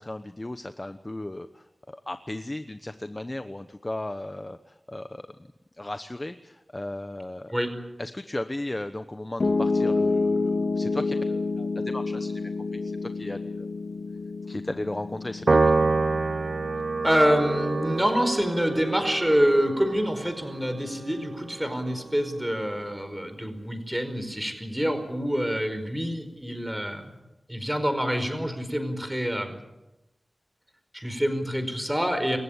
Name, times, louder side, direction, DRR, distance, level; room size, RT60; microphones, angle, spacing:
voice 1, 0.0-5.3 5.8-7.5 8.0-12.4 12.8-13.7 14.5-15.7, left 1 dB, 25° left, 10 dB, 1.0 m, -35 dB
Piano, 9.4-21.6, left 3 dB, 65° left, 2.3 m, -30 dB
Piano 2, 15.5-22.0, right 3 dB, 65° right, 0.8 m, -27 dB
voice 2, 17.0-27.1 27.5-29.6 30.9-32.4, equal, 5° right, 8 dB, 4.9 m, -26 dB
27.5 x 15.5 x 8.8 m, 0.97 s
wide cardioid pair, 65°, 0 cm